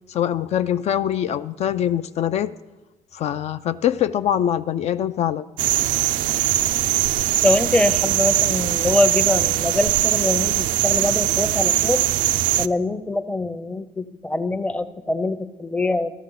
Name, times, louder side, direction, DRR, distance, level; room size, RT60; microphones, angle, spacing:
voice 1, 0.1-2.5 3.1-5.5, left 10 dB, 55° left, 11 dB, 0.4 m, -23 dB
sound 1, 5.6-12.7, right 14 dB, 85° right, 0.4 m, -21 dB
voice 2, 7.4-12.1 12.6-16.1, left 2 dB, 10° left, 10 dB, 0.6 m, -23 dB
14.0 x 13.5 x 3.9 m, 1.1 s
cardioid pair, 135°, 13 cm